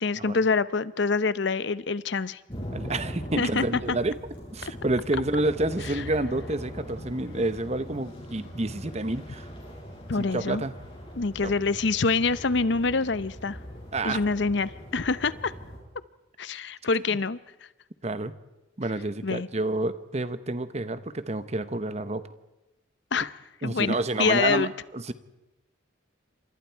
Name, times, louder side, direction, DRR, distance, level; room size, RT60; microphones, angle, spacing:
voice 1, 0.0-2.4 3.4-4.0 10.1-10.6 11.2-13.6 14.0-15.5 16.4-17.4 19.2-19.5 23.1-23.3 23.6-24.7, left 4 dB, 60° left, 16 dB, 0.7 m, -26 dB
sound 1, 2.5-15.8, equal, 25° left, 7.8 m, -41 dB
voice 2, 2.7-4.2 4.5-9.5 10.2-10.7 11.4-11.5 13.9-14.2 18.0-18.3 18.8-22.2 23.6-24.7 24.9-25.1, right 2 dB, 35° right, 13 dB, 1.0 m, -29 dB
29.0 x 27.0 x 4.6 m, 1.0 s
head